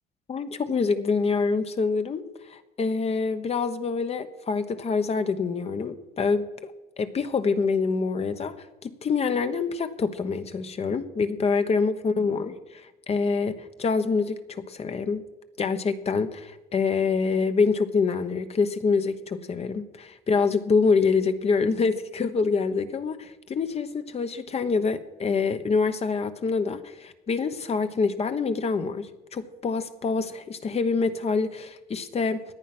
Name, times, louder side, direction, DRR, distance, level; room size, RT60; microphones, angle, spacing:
voice 1, 0.3-2.2 2.5-6.7 7.0-8.6 8.8-15.2 15.6-32.4, left 4 dB, 40° left, 10 dB, 1.1 m, -26 dB
17.5 x 10.5 x 6.1 m, 1.0 s
cardioid pair, 110°, 17 cm